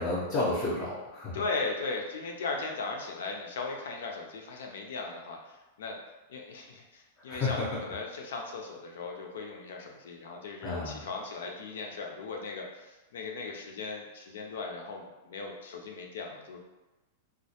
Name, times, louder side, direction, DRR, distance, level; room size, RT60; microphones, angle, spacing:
voice 1, 0.0-1.4 7.3-7.6 10.6-11.0, left 2 dB, 25° left, -7 dB, 0.5 m, -31 dB
voice 2, 1.3-6.0 6.3-16.6, left 3 dB, 80° left, 1 dB, 0.5 m, -38 dB
2.2 x 2.1 x 2.8 m, 1.1 s
supercardioid pair, 155°, 0 cm